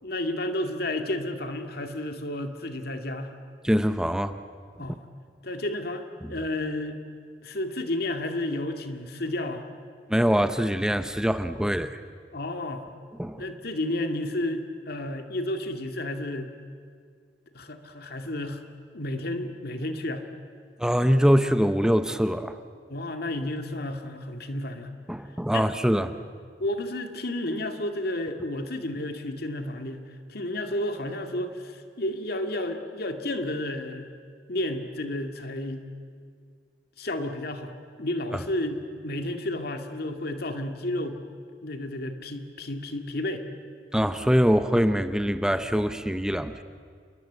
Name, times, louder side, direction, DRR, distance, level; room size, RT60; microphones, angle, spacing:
voice 1, 0.0-3.3 4.8-5.0 5.4-7.0 7.4-9.6 12.3-12.8 13.4-16.5 17.5-18.6 18.9-20.2 22.9-24.9 25.5-26.1 26.6-34.1 34.5-35.9 37.0-41.2 41.6-43.4, left 1 dB, 60° left, 6 dB, 2.2 m, -31 dB
voice 2, 3.6-4.4 6.2-6.3 10.1-12.0 13.2-13.4 20.8-22.6 25.1-26.1 43.9-46.6, equal, 5° right, 10 dB, 0.7 m, -23 dB
29.0 x 21.5 x 8.2 m, 2.1 s
head